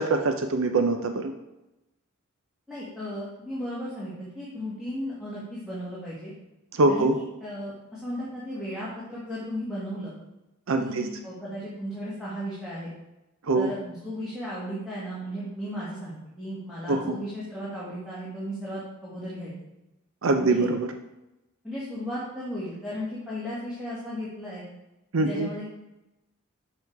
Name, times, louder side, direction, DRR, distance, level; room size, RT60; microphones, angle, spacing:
voice 1, 0.0-1.3 6.7-7.2 10.7-11.1 13.5-13.7 16.9-17.2 20.2-20.9 25.1-25.5, right 2 dB, 65° right, 6 dB, 0.6 m, -23 dB
voice 2, 2.7-6.3 6.9-10.1 10.8-12.9 13.5-19.5 20.4-20.7 21.6-24.7 25.2-25.7, equal, 5° right, -9 dB, 1.8 m, -35 dB
7.1 x 5.0 x 4.6 m, 0.96 s
head